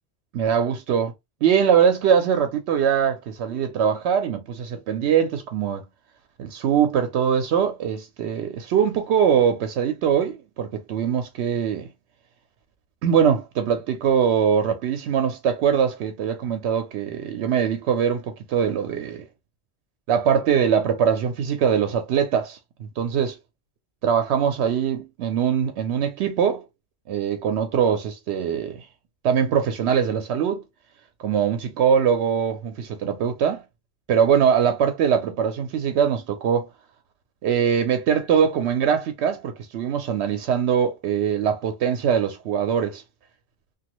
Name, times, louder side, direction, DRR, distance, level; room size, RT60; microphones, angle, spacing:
voice 1, 0.3-1.1 1.4-5.8 6.4-11.9 13.0-19.2 20.1-22.6 23.0-23.4 24.0-26.6 27.1-28.9 29.2-30.6 31.2-33.6 34.1-36.7 37.4-43.0, right 7 dB, 80° right, 0.8 m, -22 dB
2.9 x 2.3 x 3.0 m
omnidirectional pair, 1.1 m